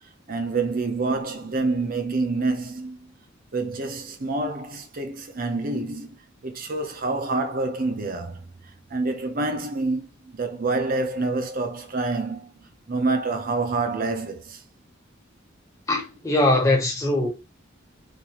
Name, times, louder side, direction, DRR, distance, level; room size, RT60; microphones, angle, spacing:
voice 1, 0.3-3.1 3.5-6.2 6.4-8.4 8.9-14.6, right 3 dB, 45° right, 0.7 m, -27 dB
voice 2, 15.9-17.3, left 2 dB, 15° left, 1.1 m, -21 dB
4.0 x 2.6 x 3.0 m
head